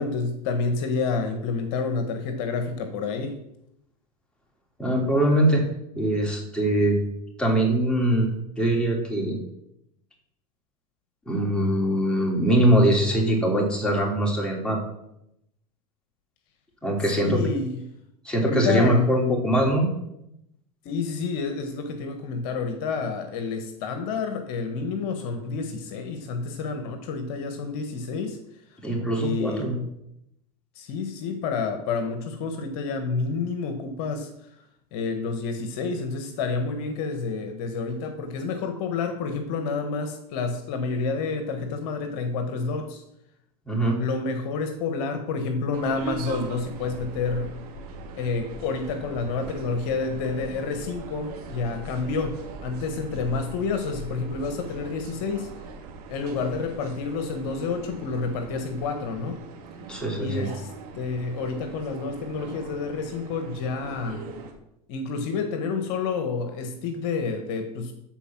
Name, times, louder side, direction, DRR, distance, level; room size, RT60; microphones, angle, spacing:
voice 1, 0.0-3.4 17.1-17.8 18.4-19.1 20.8-28.4 28.7-28.8 29.1-29.7 30.7-34.5 34.9-43.0 44.0-47.6 48.2-55.5 56.1-59.4 60.2-64.2 64.9-67.9, left 4 dB, 60° left, 7 dB, 1.5 m, -29 dB
voice 2, 4.8-5.6 5.9-7.0 7.4-8.3 8.6-9.4 11.3-14.8 16.8-17.4 18.2-19.9 28.8-29.8 43.7-44.0 59.9-60.5, right 1 dB, 5° left, -1 dB, 3.0 m, -22 dB
sound 1, 45.7-64.5, right 4 dB, 70° right, 2.3 m, -40 dB
13.5 x 4.6 x 6.1 m, 0.81 s
hypercardioid pair, 110°, 20 cm